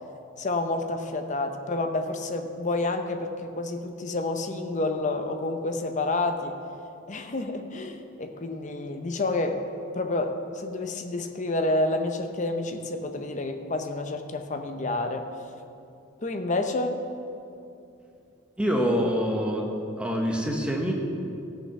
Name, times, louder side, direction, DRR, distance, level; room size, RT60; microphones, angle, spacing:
voice 1, 0.4-6.6 7.1-9.6 9.9-15.3 16.2-17.0, left 2 dB, 35° left, 6 dB, 0.7 m, -29 dB
voice 2, 18.6-19.7 20.0-20.9, equal, 5° right, 0 dB, 1.0 m, -25 dB
14.5 x 6.7 x 5.8 m, 2.7 s
head